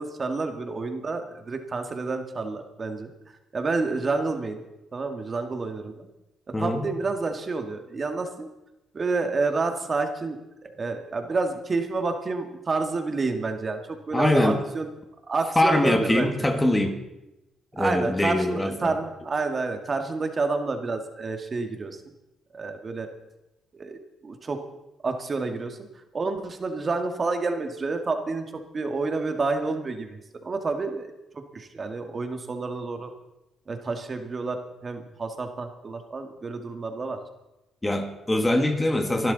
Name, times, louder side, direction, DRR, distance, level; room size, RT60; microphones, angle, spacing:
voice 1, 0.0-3.1 3.5-4.7 4.9-6.1 6.6-8.5 8.9-14.9 15.3-16.5 17.8-22.0 22.5-23.1 23.7-24.0 24.2-24.6 25.0-25.8 26.1-28.5 28.7-31.1 31.3-33.1 33.7-37.2, right 3 dB, 35° right, 6 dB, 2.0 m, -29 dB
voice 2, 6.5-6.9 14.1-14.6 15.6-17.0 17.8-18.9 37.8-39.3, left 1 dB, 15° left, 6 dB, 1.8 m, -23 dB
25.0 x 12.0 x 4.1 m, 0.95 s
cardioid pair, 90°, 0 cm